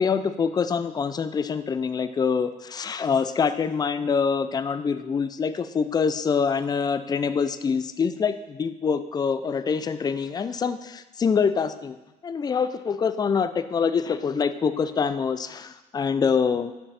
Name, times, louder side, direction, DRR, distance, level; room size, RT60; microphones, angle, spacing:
voice 1, 0.0-12.0 12.2-16.7, left 6 dB, 25° left, 11 dB, 0.4 m, -25 dB
8.8 x 5.7 x 4.2 m, 1.1 s
cardioid pair, 110°, 17 cm